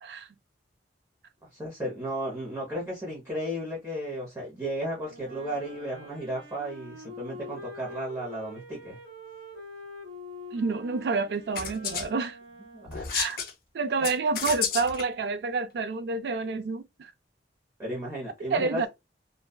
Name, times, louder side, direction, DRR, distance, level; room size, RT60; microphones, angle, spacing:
voice 1, 1.5-9.0 12.7-13.1 17.8-18.9, equal, 15° right, 0.7 m, -34 dB
Wind instrument woodwind instrument, 5.0-13.4, left 1 dB, 80° right, 1.3 m, -45 dB
voice 2, 10.5-12.4 13.1-13.4 13.7-17.1 18.5-18.9, right 4 dB, 65° right, 0.3 m, -29 dB
sound 1, 11.5-12.1 12.8-13.5 14.0-15.0, left 7 dB, 55° left, 0.4 m, -31 dB
2.6 x 2.2 x 2.2 m
head